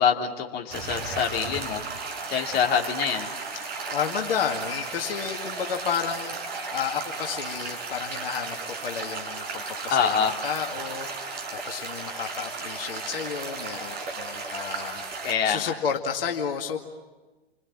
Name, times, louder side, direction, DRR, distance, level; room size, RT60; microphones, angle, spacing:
voice 1, 0.0-2.0 2.3-3.3 9.9-10.4 15.2-15.7, left 7 dB, 30° left, 1 dB, 2.7 m, -25 dB
sound 1, 0.7-15.3, right 4 dB, 30° right, 6.3 m, -35 dB
voice 2, 3.9-6.3 6.7-10.2 10.4-11.1 11.7-15.0 15.4-16.8, left 7 dB, 65° left, 2 dB, 2.3 m, -31 dB
29.5 x 25.0 x 7.5 m, 1.2 s
figure-of-eight pair, 110°, 31 cm